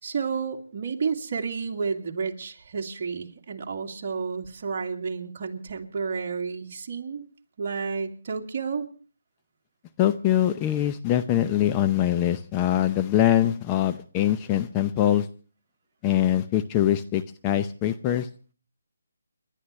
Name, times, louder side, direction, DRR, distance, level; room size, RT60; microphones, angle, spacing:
voice 1, 0.0-7.2 7.6-8.9, right 5 dB, 45° right, 2 dB, 2.3 m, -31 dB
voice 2, 10.0-15.3 16.0-18.3, left 12 dB, 20° left, 9 dB, 0.6 m, -23 dB
29.5 x 11.5 x 3.2 m, 0.38 s
hypercardioid pair, 160°, 0 cm